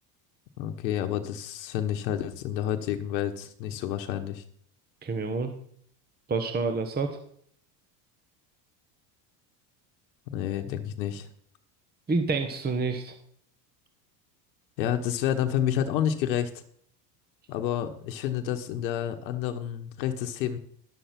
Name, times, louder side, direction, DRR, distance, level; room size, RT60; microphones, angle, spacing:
voice 1, 0.6-4.4 10.3-11.3 14.8-16.5 17.5-20.6, left 10 dB, 90° left, 6 dB, 1.1 m, -29 dB
voice 2, 5.0-5.5 6.3-7.2 12.1-13.2, right 4 dB, 20° right, 7 dB, 1.1 m, -28 dB
11.5 x 6.9 x 5.8 m, 0.63 s
supercardioid pair, 110°, 50 cm